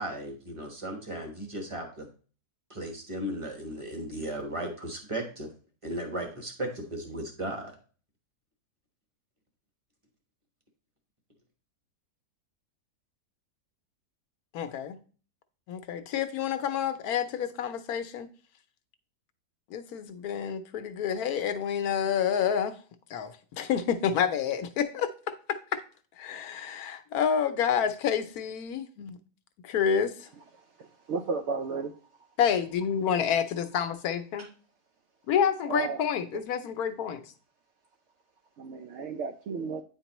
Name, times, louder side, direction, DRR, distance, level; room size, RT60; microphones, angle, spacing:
voice 1, 0.0-2.1 2.7-5.5 5.8-7.7, right 1 dB, 20° right, 1.0 m, -36 dB
voice 2, 14.5-15.0 15.7-18.3 19.7-22.8 23.1-25.8 26.2-29.2 29.6-30.3 32.4-34.5 35.3-37.2, left 8 dB, 70° left, 1.1 m, -29 dB
voice 3, 30.5-32.0 34.4-34.5 35.7-36.0 38.6-39.8, right 4 dB, 80° right, 0.6 m, -34 dB
8.9 x 4.5 x 3.0 m
omnidirectional pair, 1.7 m